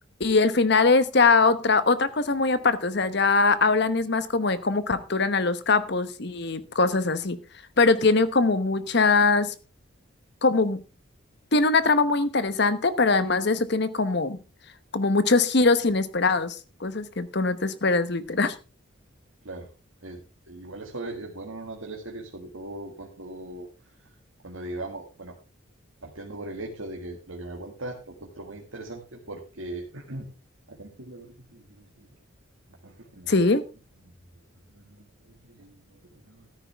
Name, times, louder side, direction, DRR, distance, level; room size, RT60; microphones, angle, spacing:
voice 1, 0.2-7.4 7.8-9.5 10.4-10.8 11.5-14.4 14.9-16.6 16.8-18.5 33.3-33.6, left 3 dB, 55° left, 13 dB, 0.9 m, -22 dB
voice 2, 20.0-23.7 24.4-25.3 26.0-30.3 30.7-32.1 32.8-33.4 34.1-34.2 34.7-36.5, right 2 dB, 85° right, 0 dB, 1.9 m, -39 dB
13.5 x 9.9 x 3.4 m, 0.32 s
head